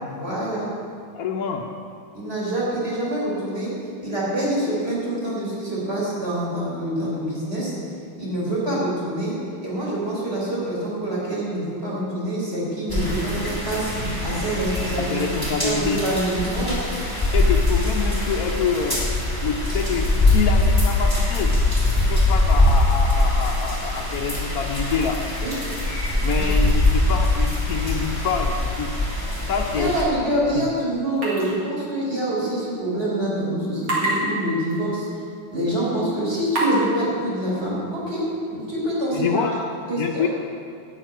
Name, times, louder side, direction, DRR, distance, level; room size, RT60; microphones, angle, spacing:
voice 1, 0.0-0.7 2.1-3.7 4.0-7.7 8.2-9.4 9.6-13.9 14.2-15.2 15.6-16.8 25.4-25.5 26.4-26.5 29.7-35.1 35.5-39.5 39.9-40.3, right 1 dB, 30° right, -6 dB, 4.3 m, -26 dB
voice 2, 1.1-1.7 15.0-16.0 17.3-19.0 19.4-21.5 22.1-25.2 26.2-28.9 29.5-30.0 39.1-39.5 40.0-40.3, left 6 dB, 60° left, 0 dB, 1.0 m, -26 dB
sound 1, 12.9-30.0, left 2 dB, 10° right, 2.9 m, -22 dB
sound 2, 31.2-31.5 31.8-31.9 33.8-34.1 34.7-34.8 35.5-35.6 36.5-36.8, right 2 dB, 80° right, 3.8 m, -24 dB
12.0 x 6.7 x 9.2 m, 2.3 s
omnidirectional pair, 2.2 m